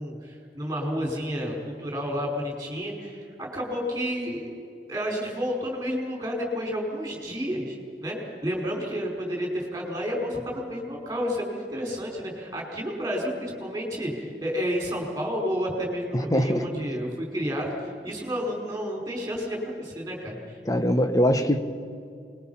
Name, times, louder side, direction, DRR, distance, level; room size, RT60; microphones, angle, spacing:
voice 1, 0.0-4.6 4.9-20.6, equal, 15° right, -1 dB, 4.9 m, -31 dB
voice 2, 16.1-16.7 20.6-21.6, equal, 20° left, 8 dB, 1.0 m, -22 dB
24.5 x 21.5 x 5.7 m, 2.4 s
head